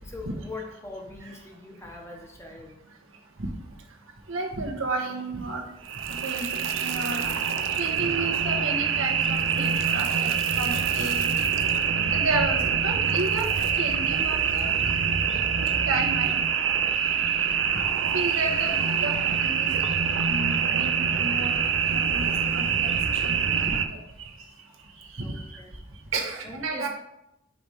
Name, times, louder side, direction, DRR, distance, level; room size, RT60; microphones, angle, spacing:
voice 1, 0.0-2.8 12.0-12.3 25.2-25.7 26.4-26.9, left 2 dB, 15° left, 1 dB, 0.8 m, -42 dB
voice 2, 4.3-5.7 6.1-7.3 7.8-11.4 12.1-13.5 13.7-14.7 15.3-15.4 15.9-16.4 17.7-17.8 18.1-19.7 20.3-21.6 21.9-24.3 24.9-25.6 26.1-26.9, right 3 dB, 85° right, 1 dB, 1.1 m, -32 dB
sound 1, 5.8-23.9, right 7 dB, 70° right, 0.5 m, -25 dB
5.2 x 4.2 x 4.9 m, 0.87 s
head